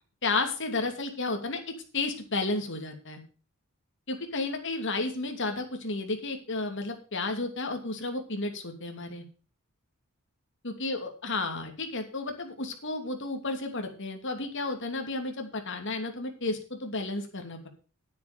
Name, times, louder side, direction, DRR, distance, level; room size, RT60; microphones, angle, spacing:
voice 1, 0.2-1.6 1.9-3.2 4.1-9.2 10.6-17.7, left 3 dB, 55° left, 4 dB, 2.7 m, -32 dB
10.5 x 9.3 x 5.1 m, 0.37 s
head